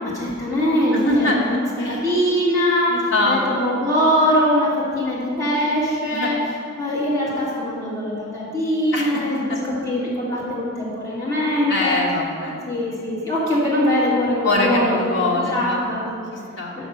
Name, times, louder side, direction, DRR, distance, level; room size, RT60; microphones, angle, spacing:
voice 1, 0.0-2.9 3.3-4.7 4.9-6.4 6.8-9.5 9.8-12.0 12.6-16.1 16.8-16.9, equal, 15° left, -9 dB, 1.8 m, -22 dB
voice 2, 0.9-2.2 2.9-3.8 6.1-6.4 8.9-9.6 11.7-12.6 14.4-15.8 16.3-16.7, left 2 dB, 60° left, -3 dB, 1.2 m, -23 dB
6.0 x 5.9 x 6.6 m, 2.4 s
head